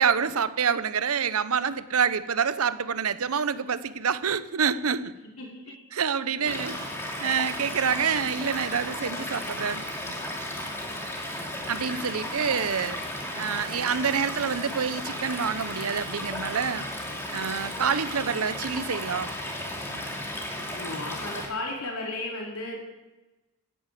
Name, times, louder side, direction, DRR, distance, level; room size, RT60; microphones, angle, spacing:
voice 1, 0.0-5.1 5.9-6.8 7.2-9.8 11.7-13.0 13.4-16.9 17.3-19.3, right 6 dB, 80° right, 15 dB, 0.8 m, -27 dB
voice 2, 5.4-5.8 6.4-6.8 12.8-12.9 20.7-22.8, left 2 dB, 80° left, -1 dB, 4.2 m, -35 dB
Stream / Liquid, 6.5-21.5, left 1 dB, 10° left, 2.6 m, -34 dB
16.5 x 10.0 x 7.6 m, 1.1 s
head